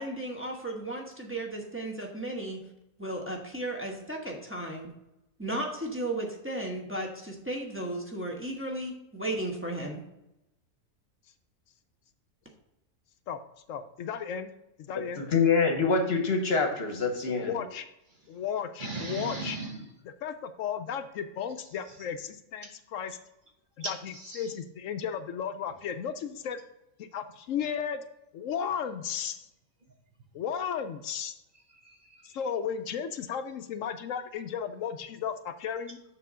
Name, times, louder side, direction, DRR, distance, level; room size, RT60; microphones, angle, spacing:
voice 1, 0.0-2.6 3.0-4.9 5.4-10.0, right 1 dB, 10° right, -1 dB, 1.1 m, -35 dB
voice 2, 13.7-14.5 14.8-15.3 17.2-17.9 18.3-19.6 20.2-23.2 23.8-26.6 27.0-28.0 28.3-29.5 30.3-31.3 32.2-36.0, left 8 dB, 75° left, 9 dB, 0.9 m, -34 dB
voice 3, 15.2-17.5, left 4 dB, 50° left, 4 dB, 1.1 m, -25 dB
voice 4, 18.8-19.9 21.6-22.1 23.8-24.6 31.5-32.4, right 2 dB, 45° right, 2 dB, 0.9 m, -39 dB
6.8 x 3.7 x 6.1 m, 0.88 s
omnidirectional pair, 1.4 m